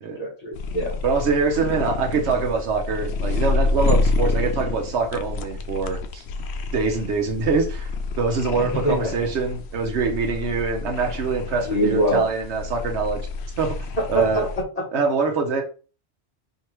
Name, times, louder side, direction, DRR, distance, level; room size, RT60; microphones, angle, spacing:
voice 1, 0.2-1.0 8.6-9.2 11.7-12.3 14.0-14.8, equal, 35° left, 0 dB, 1.1 m, -24 dB
sound 1, 0.5-14.6, left 3 dB, 70° left, 0.8 m, -28 dB
voice 2, 1.0-6.2 6.7-7.9 8.2-13.3 13.6-14.5 14.9-15.6, right 4 dB, 75° right, 2 dB, 1.0 m, -24 dB
4.5 x 2.8 x 3.0 m, 0.36 s
omnidirectional pair, 1.2 m